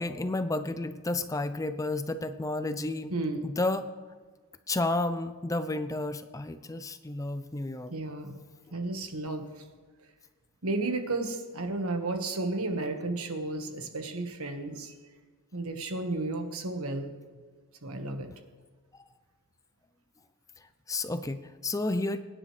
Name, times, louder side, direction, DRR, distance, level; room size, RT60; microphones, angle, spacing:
voice 1, 0.0-3.1 3.4-3.9 4.7-7.9 20.9-22.2, left 2 dB, 15° left, 10 dB, 0.4 m, -31 dB
voice 2, 3.1-3.4 7.9-8.4 8.7-9.5 10.6-14.9 15.5-17.1 17.8-18.3, right 2 dB, 80° right, 5 dB, 1.5 m, -33 dB
23.5 x 9.9 x 3.3 m, 1.4 s
head